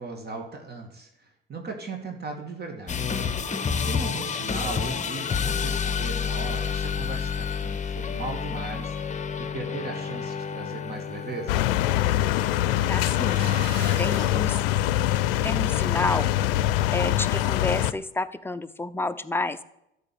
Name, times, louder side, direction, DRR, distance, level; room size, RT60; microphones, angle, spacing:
voice 1, 0.0-3.2 3.9-11.6, right 3 dB, 35° right, 3 dB, 2.5 m, -37 dB
sound 1, 2.9-13.7, left 6 dB, 25° left, 1.1 m, -30 dB
sound 2, 11.5-17.9, left 13 dB, 70° left, 0.6 m, -24 dB
voice 2, 12.9-13.5 14.0-14.6 15.4-16.3 16.9-19.6, left 2 dB, 10° left, 10 dB, 0.7 m, -29 dB
sound 3, 13.1-14.4, right 3 dB, 75° right, 3.3 m, -39 dB
13.0 x 5.3 x 8.8 m, 0.82 s
hypercardioid pair, 65°, 29 cm